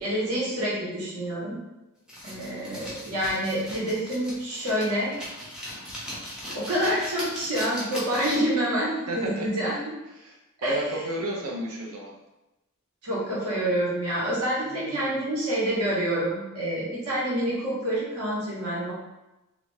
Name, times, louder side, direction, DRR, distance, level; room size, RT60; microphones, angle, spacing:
voice 1, 0.0-1.6 2.2-5.1 6.5-9.7 10.6-11.0 13.0-18.9, right 1 dB, 90° right, -7 dB, 1.2 m, -27 dB
sound 1, 2.1-8.6, equal, 5° right, 0.7 m, -38 dB
voice 2, 9.1-9.5 10.2-10.3 10.6-12.2 14.6-15.2, right 1 dB, 70° right, 0 dB, 0.7 m, -32 dB
3.2 x 2.5 x 3.1 m, 0.99 s
head